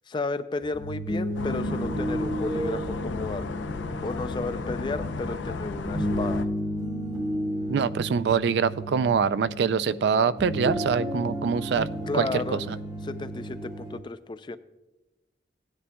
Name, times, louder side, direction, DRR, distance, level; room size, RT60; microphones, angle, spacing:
voice 1, 0.1-3.6 4.0-6.5 12.0-12.6 13.0-14.6, left 3 dB, 25° left, 12 dB, 0.3 m, -33 dB
sound 1, 0.6-14.0, equal, 20° right, 1.0 m, -32 dB
sound 2, 1.3-6.4, left 3 dB, 80° left, 0.5 m, -34 dB
voice 2, 7.7-11.9 12.1-12.8, right 6 dB, 65° right, 15 dB, 0.3 m, -24 dB
16.5 x 9.8 x 2.2 m, 1.1 s
head